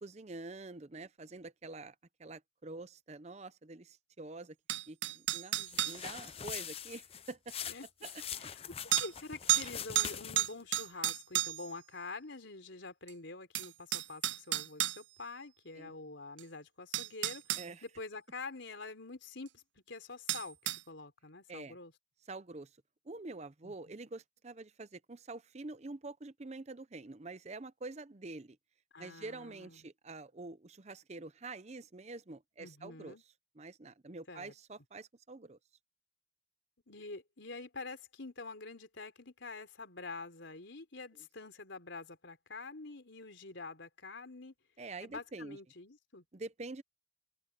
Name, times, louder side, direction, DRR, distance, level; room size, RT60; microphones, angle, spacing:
voice 1, 0.0-4.6 4.9-7.5 8.0-8.5 15.8-15.9 17.6-17.8 21.5-21.8 22.3-22.7 23.0-28.6 29.0-33.2 33.5-35.6 44.8-45.6 46.3-46.8, right 3 dB, 35° right, 0.7 m, -46 dB
sound 1, 4.7-6.0 7.5-7.6 8.9-9.1 9.5-9.7 9.9-11.7 13.1-13.2 13.5-15.0 16.4-16.5 16.9-17.7 20.3-20.8, right 13 dB, 80° right, 0.5 m, -32 dB
sound 2, 5.6-10.6, left 9 dB, 30° left, 0.6 m, -43 dB
voice 2, 7.7-8.1 8.3-8.6 9.0-21.9 23.6-23.7 28.9-29.8 32.6-33.2 34.3-34.5 36.9-44.5 45.0-46.2, left 3 dB, 80° left, 3.7 m, -47 dB
open air
head